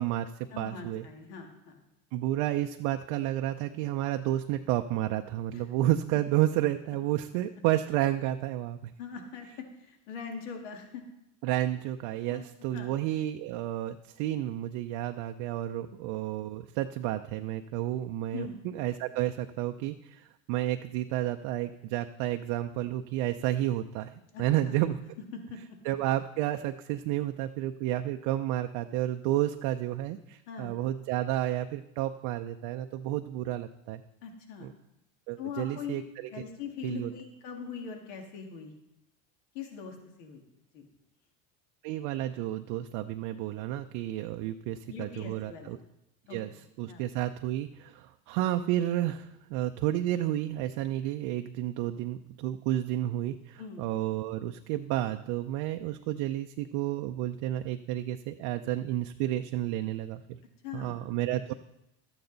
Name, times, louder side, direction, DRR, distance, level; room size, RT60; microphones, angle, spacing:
voice 1, 0.0-1.1 2.1-8.9 11.4-25.0 25.8-34.0 34.6-34.7 35.3-36.3 36.8-37.1 41.8-45.8 46.3-46.5 46.8-60.4 60.7-61.5, right 13 dB, 65° right, 6 dB, 0.6 m, -31 dB
voice 2, 0.5-1.8 5.5-5.6 9.0-11.0 12.3-12.9 18.3-18.6 24.3-24.8 25.3-25.6 30.5-30.7 34.2-34.7 35.4-35.9 36.3-38.7 39.5-40.4 40.7-40.9 44.9-45.8 46.2-46.6 46.9-47.0 53.6-53.8 60.6-61.0, left 6 dB, 75° left, 3 dB, 2.1 m, -42 dB
12.5 x 8.8 x 3.9 m, 0.86 s
supercardioid pair, 115°, 36 cm